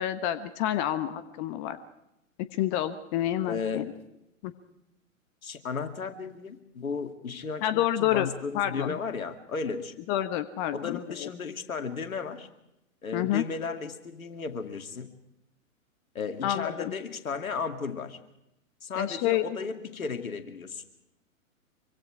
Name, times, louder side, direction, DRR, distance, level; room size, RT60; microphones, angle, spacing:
voice 1, 0.0-1.8 2.5-3.9 4.4-4.5 7.6-9.0 10.1-11.3 13.1-13.4 16.4-16.9 18.9-19.6, left 12 dB, 35° left, 11 dB, 1.2 m, -28 dB
voice 2, 3.4-3.9 5.4-9.9 10.7-12.5 13.0-15.1 16.1-18.2 18.8-20.8, left 5 dB, 80° left, 7 dB, 2.3 m, -34 dB
25.5 x 24.5 x 4.9 m, 0.86 s
figure-of-eight pair, 115°, 41 cm